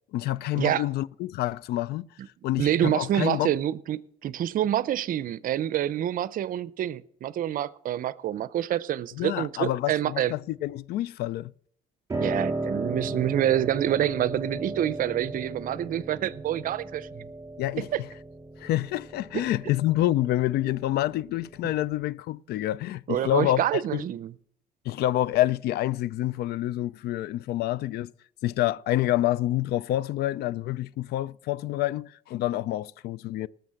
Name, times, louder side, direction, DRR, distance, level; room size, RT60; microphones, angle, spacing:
voice 1, 0.1-2.1 2.4-3.5 9.2-11.5 17.6-18.1 18.6-24.0 24.8-28.1 28.4-33.5, left 14 dB, 70° left, 0.4 m, -27 dB
voice 2, 2.6-10.3 12.2-17.3 17.8-18.0 23.1-24.3, right 11 dB, 55° right, 0.6 m, -27 dB
Piano, 12.1-22.0, right 2 dB, 20° right, 4.0 m, -35 dB
18.0 x 6.9 x 6.4 m
cardioid pair, 110°, 17 cm